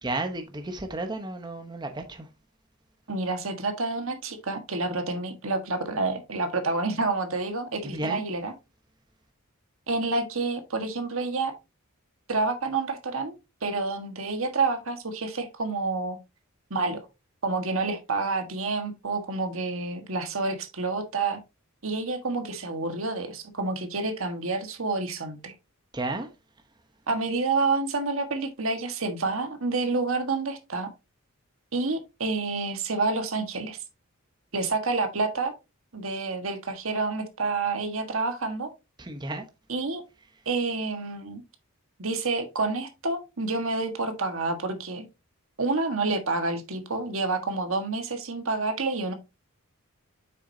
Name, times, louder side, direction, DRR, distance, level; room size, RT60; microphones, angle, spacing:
voice 1, 0.0-2.3 7.8-8.2 25.9-26.3 39.0-39.4, right 2 dB, 20° right, 0.9 m, -32 dB
voice 2, 3.1-8.5 9.9-11.5 12.3-13.3 13.6-16.2 16.7-17.1 17.4-21.4 21.8-25.5 27.1-30.9 31.7-33.8 34.5-35.5 35.9-38.7 39.7-40.0 40.4-41.4 42.0-45.1 45.6-49.1, right 3 dB, 70° right, 1.5 m, -28 dB
7.7 x 6.3 x 2.7 m
head